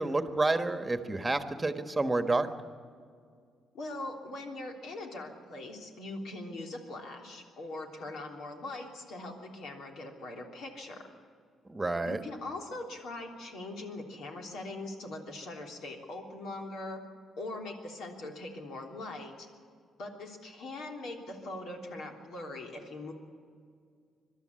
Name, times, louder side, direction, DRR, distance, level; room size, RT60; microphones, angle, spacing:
voice 1, 0.0-2.5 11.7-12.2, right 2 dB, 15° right, 8 dB, 1.4 m, -29 dB
voice 2, 3.7-11.1 12.0-17.0 17.4-19.5 20.0-23.1, left 2 dB, 75° left, 1 dB, 3.3 m, -41 dB
22.5 x 12.5 x 9.8 m, 2.1 s
cardioid pair, 90°, 0 cm